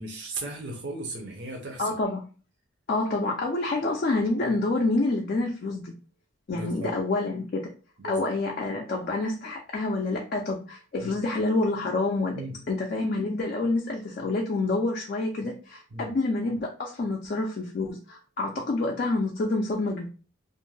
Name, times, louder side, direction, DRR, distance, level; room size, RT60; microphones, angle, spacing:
voice 1, 0.0-1.9 6.5-7.0 8.0-8.2 11.0-11.1 12.3-12.6 15.9-16.1, right 2 dB, 60° right, 0 dB, 0.6 m, -36 dB
voice 2, 1.8-2.2 2.9-5.9 6.5-7.7 8.1-12.4 12.7-20.1, left 2 dB, 45° left, 0 dB, 0.3 m, -27 dB
2.5 x 2.1 x 3.1 m, 0.36 s
head